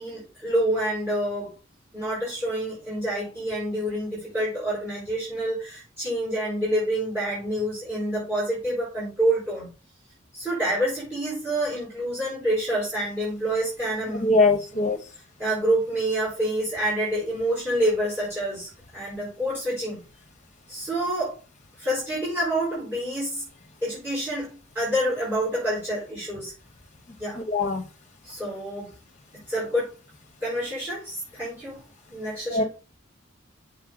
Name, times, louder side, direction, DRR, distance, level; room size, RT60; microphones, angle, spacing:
voice 1, 0.0-1.5 1.9-9.7 10.3-14.3 14.6-14.8 15.4-20.0 20.7-21.4 21.8-23.5 23.8-24.5 24.7-26.5 27.2-27.4 28.2-28.9 29.3-29.9 30.4-31.8 32.1-32.7, right 1 dB, 10° right, -8 dB, 4.5 m, -27 dB
voice 2, 14.2-15.0 27.5-27.8 32.5-32.6, left 3 dB, 35° left, 6 dB, 1.1 m, -21 dB
7.3 x 5.4 x 3.9 m, 0.33 s
head